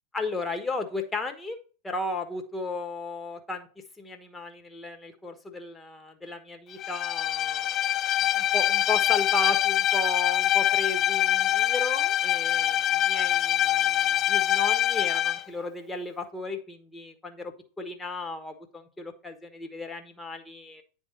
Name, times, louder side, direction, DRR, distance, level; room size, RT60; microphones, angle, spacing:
voice 1, 0.1-1.6 1.8-3.7 4.0-7.9 8.2-20.8, left 3 dB, 10° left, 5 dB, 1.3 m, -35 dB
Bowed string instrument, 6.8-15.4, left 12 dB, 30° left, 0.4 m, -24 dB
9.7 x 3.6 x 5.4 m, 0.38 s
figure-of-eight pair, 90°, 0 cm